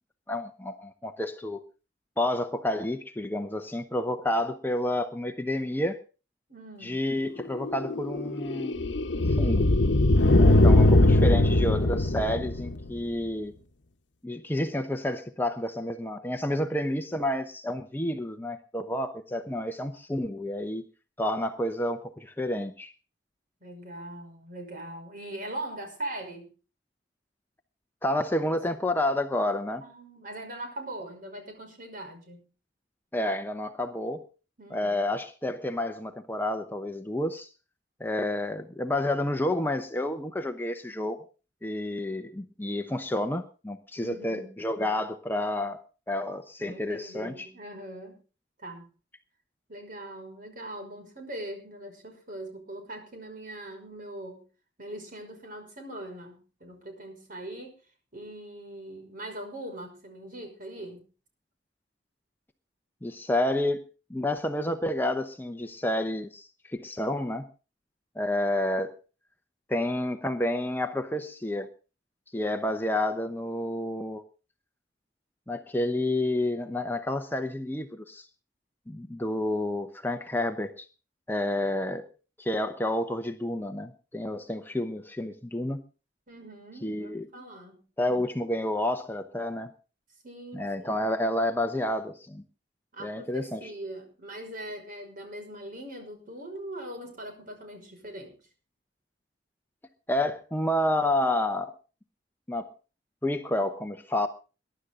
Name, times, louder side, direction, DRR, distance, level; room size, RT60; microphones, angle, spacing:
voice 1, 0.3-1.6 2.2-6.0 6.8-9.7 10.4-13.5 14.2-20.9 21.2-22.9 28.0-29.8 33.1-34.2 34.7-37.5 38.0-41.2 41.6-45.8 46.1-47.5 63.0-63.8 64.1-67.5 68.2-68.9 69.7-71.7 72.3-74.2 75.5-78.3 78.9-80.9 81.3-82.1 82.4-85.8 86.8-87.3 88.0-89.7 90.5-92.4 93.0-93.7 100.1-101.7 102.5-102.7 103.2-104.3, left 1 dB, 10° left, 0.9 m, -30 dB
voice 2, 6.5-7.0 23.6-26.5 29.8-32.5 34.6-35.0 44.0-44.6 46.6-48.2 48.6-48.9 49.7-54.5 54.8-57.7 58.1-61.0 86.3-87.8 90.2-91.0 92.9-98.4, right 1 dB, 50° right, 5.8 m, -41 dB
sound 1, 7.4-13.0, left 1 dB, 85° left, 0.9 m, -21 dB
22.0 x 11.5 x 3.8 m
head